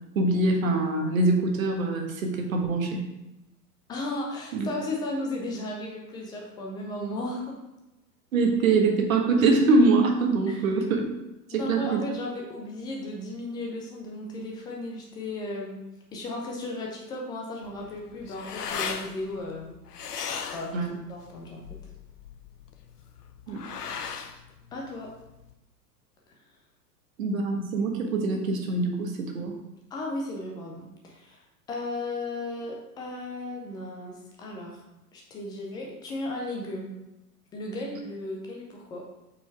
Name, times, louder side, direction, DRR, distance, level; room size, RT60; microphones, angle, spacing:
voice 1, 0.1-3.1 4.5-4.7 8.3-11.0 11.5-12.0 20.7-20.9 23.5-23.6 27.2-29.6, right 3 dB, 55° right, 2 dB, 1.4 m, -24 dB
voice 2, 3.9-7.6 10.5-10.7 11.5-15.8 16.1-19.8 20.1-21.9 24.7-25.1 29.9-31.4 31.7-34.8 35.1-36.9 37.5-39.0, left 2 dB, 10° left, -1 dB, 0.4 m, -35 dB
sound 1, 17.6-25.5, left 6 dB, 70° left, 0.7 m, -38 dB
5.3 x 4.4 x 4.7 m, 0.96 s
figure-of-eight pair, 100°, 48 cm